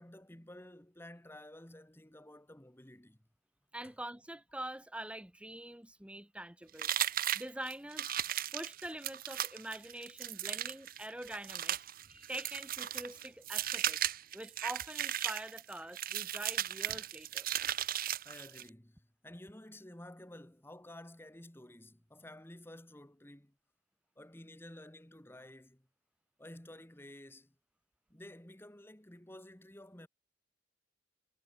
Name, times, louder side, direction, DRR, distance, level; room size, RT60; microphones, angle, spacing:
voice 1, 0.0-3.2 18.2-23.5 24.2-25.9 26.4-27.5 28.1-30.1, left 1 dB, 10° left, 1.4 m, -52 dB
voice 2, 3.7-6.9 7.3-8.1 8.5-14.0 14.3-17.5, right 1 dB, 5° right, 1.1 m, -45 dB
sound 1, 6.8-18.7, right 11 dB, 50° right, 1.0 m, -36 dB
head